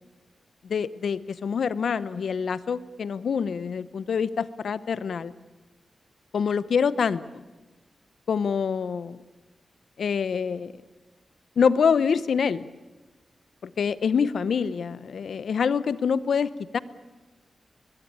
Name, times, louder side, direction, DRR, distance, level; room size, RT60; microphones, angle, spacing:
voice 1, 0.6-5.3 6.3-7.4 8.3-9.2 10.0-10.7 11.6-12.7 13.6-16.8, left 6 dB, 80° left, 16 dB, 0.9 m, -26 dB
22.0 x 22.0 x 8.7 m, 1.2 s
wide cardioid pair, 105°, 0 cm